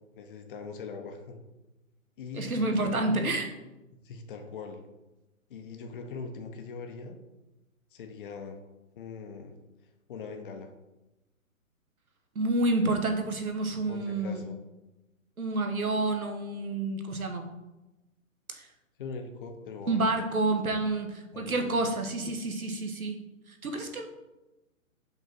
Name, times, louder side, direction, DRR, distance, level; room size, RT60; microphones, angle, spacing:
voice 1, 0.2-1.4 2.2-3.4 4.0-4.8 5.5-7.2 7.9-8.6 9.0-9.5 10.1-10.7 13.9-14.6 19.0-20.1 21.3-21.8, left 4 dB, 40° left, 5 dB, 0.8 m, -41 dB
voice 2, 2.3-3.5 12.3-14.4 15.4-17.5 18.5-18.7 19.9-23.2 23.5-24.1, right 2 dB, 90° right, 5 dB, 1.2 m, -29 dB
5.5 x 3.6 x 5.9 m, 1.0 s
figure-of-eight pair, 140°, 42 cm